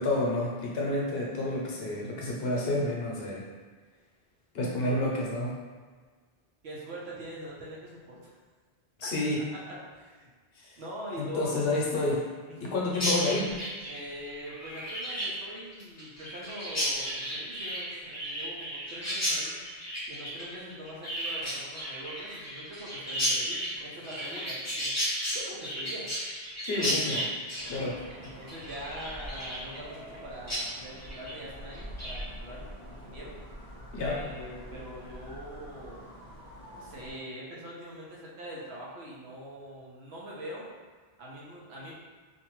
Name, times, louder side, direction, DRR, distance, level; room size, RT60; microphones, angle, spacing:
voice 1, 0.0-3.5 4.5-5.5 9.0-9.4 10.6-10.8 11.2-12.3 12.6-13.6 26.6-27.3 27.7-28.0 33.9-34.2, left 2 dB, 70° left, -3 dB, 0.8 m, -29 dB
voice 2, 6.6-8.4 9.0-9.1 9.5-10.3 10.8-11.8 12.5-12.8 13.9-19.6 20.1-24.9 25.3-26.1 28.2-33.4 34.0-36.1 36.7-40.7 41.2-41.9, equal, 90° right, -5 dB, 1.0 m, -43 dB
Chirp tweet, 12.9-30.2 30.5-30.6 31.0-31.4 31.7-32.2, equal, 20° left, 0.6 m, -33 dB
sound 1, 27.6-37.1, equal, 55° right, 1.1 m, -45 dB
2.6 x 2.2 x 3.0 m, 1.5 s
omnidirectional pair, 1.1 m